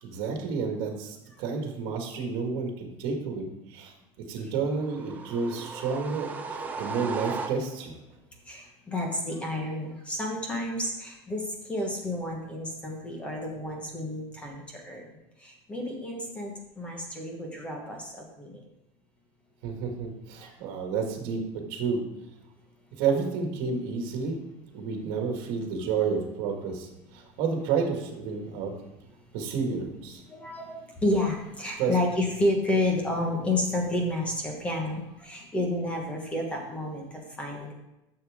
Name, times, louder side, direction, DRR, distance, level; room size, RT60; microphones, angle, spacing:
voice 1, 0.0-7.9 19.6-22.0 23.0-24.4 24.7-28.7 29.3-30.2 31.8-31.9, right 5 dB, 55° right, 3 dB, 1.8 m, -30 dB
sound 1, 4.8-8.0, right 4 dB, 15° right, 0.6 m, -36 dB
voice 2, 8.5-18.6 20.4-20.5 30.3-37.7, left 1 dB, 10° left, 1 dB, 1.2 m, -30 dB
11.0 x 6.8 x 3.5 m, 0.92 s
cardioid pair, 180°, 12 cm